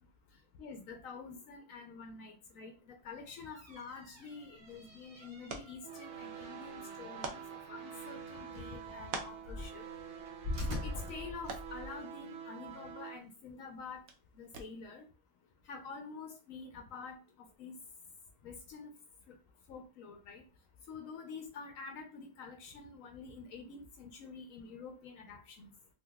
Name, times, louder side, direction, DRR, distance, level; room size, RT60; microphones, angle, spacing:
voice 1, 0.6-9.8 10.7-14.0 14.4-15.1 15.7-17.7 18.4-18.9 19.3-19.4 19.7-20.4 20.9-25.7, left 5 dB, 70° left, 4 dB, 1.0 m, -48 dB
sound 1, 3.1-11.9, left 1 dB, 45° right, 1.2 m, -45 dB
sound 2, 4.3-15.0, right 4 dB, 80° right, 1.1 m, -50 dB
sound 3, 5.8-13.2, right 7 dB, 65° right, 0.8 m, -47 dB
3.7 x 2.7 x 2.3 m, 0.33 s
omnidirectional pair, 1.5 m